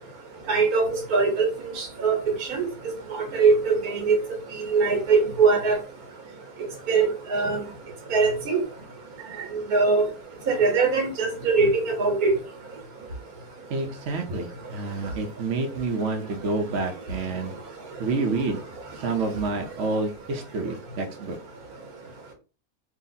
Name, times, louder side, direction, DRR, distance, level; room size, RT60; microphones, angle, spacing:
voice 1, 0.5-1.5 1.8-2.6 3.1-4.2 4.7-5.8 6.9-7.6 8.1-8.6 9.7-10.0 10.5-12.3, right 4 dB, 85° right, 4 dB, 1.6 m, -21 dB
voice 2, 13.7-17.5 18.0-18.6 19.0-21.4, right 3 dB, 60° right, 3 dB, 1.0 m, -28 dB
3.0 x 2.9 x 4.0 m, 0.34 s
omnidirectional pair, 1.5 m